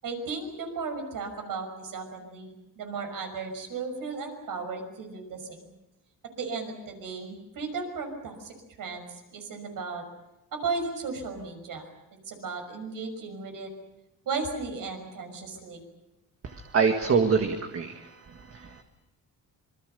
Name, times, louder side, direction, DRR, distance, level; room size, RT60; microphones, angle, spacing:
voice 1, 0.0-5.6 6.4-10.0 10.5-11.9 12.3-13.7 14.2-15.8, right 4 dB, 65° right, 5 dB, 6.0 m, -35 dB
voice 2, 16.4-18.1 18.4-18.8, right 5 dB, 40° right, 5 dB, 1.8 m, -25 dB
27.0 x 22.5 x 6.8 m, 0.95 s
cardioid pair, 135°, 35 cm